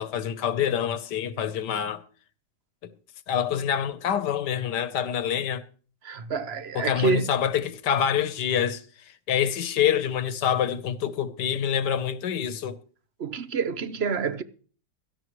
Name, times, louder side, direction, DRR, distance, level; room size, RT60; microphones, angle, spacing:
voice 1, 0.0-2.0 2.8-2.9 3.3-5.6 6.7-12.8, left 9 dB, 75° left, 1.5 m, -26 dB
voice 2, 6.0-7.3 13.2-14.4, right 5 dB, 45° right, 0.9 m, -27 dB
16.5 x 13.5 x 3.1 m
omnidirectional pair, 1.9 m